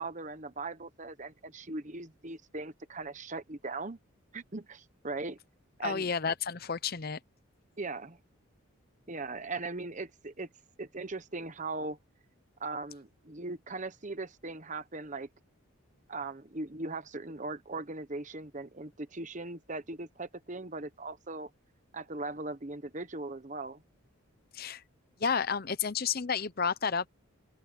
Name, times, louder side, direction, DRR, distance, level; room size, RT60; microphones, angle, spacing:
voice 1, 0.0-4.0 4.3-5.4 5.8-6.1 7.8-8.2 9.1-10.5 10.8-12.0 12.6-15.3 16.1-21.5 21.9-23.8, right 3 dB, 35° right, 1.0 m, -39 dB
voice 2, 5.8-7.2 24.5-24.8 25.2-27.1, left 6 dB, 45° left, 0.7 m, -31 dB
open air
head